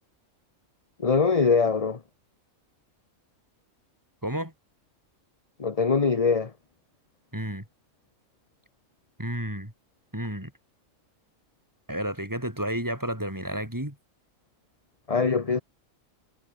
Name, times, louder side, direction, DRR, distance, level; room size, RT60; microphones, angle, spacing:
voice 1, 1.0-2.0 5.6-6.5 15.1-15.6, left 5 dB, 30° left, 1.1 m, -22 dB
voice 2, 4.2-4.5 7.3-7.6 9.2-9.7 10.1-10.5 11.9-14.0, right 1 dB, 15° right, 5.6 m, -31 dB
omnidirectional pair, 1.4 m